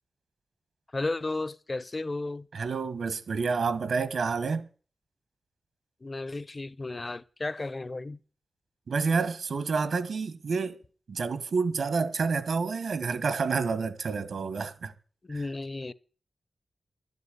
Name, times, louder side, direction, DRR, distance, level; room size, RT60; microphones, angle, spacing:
voice 1, 0.9-2.5 6.0-8.2 15.2-15.9, left 2 dB, 30° left, 0.6 m, -33 dB
voice 2, 2.5-4.7 8.9-10.8 11.1-14.9 15.3-15.4, right 4 dB, 80° right, 1.4 m, -29 dB
12.0 x 8.2 x 9.2 m
wide cardioid pair, 135°, 0 cm